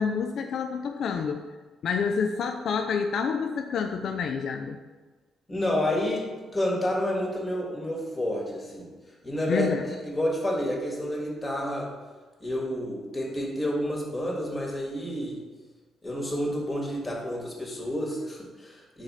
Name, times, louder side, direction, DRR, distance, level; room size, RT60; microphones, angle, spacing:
voice 1, 0.0-1.4 1.8-4.8 9.5-9.8, left 6 dB, 65° left, 5 dB, 0.3 m, -28 dB
voice 2, 5.5-8.9 9.2-11.9 12.4-15.4 16.0-19.0, equal, 25° left, -1 dB, 1.6 m, -29 dB
5.0 x 4.2 x 4.8 m, 1.4 s
cardioid pair, 90°, 0 cm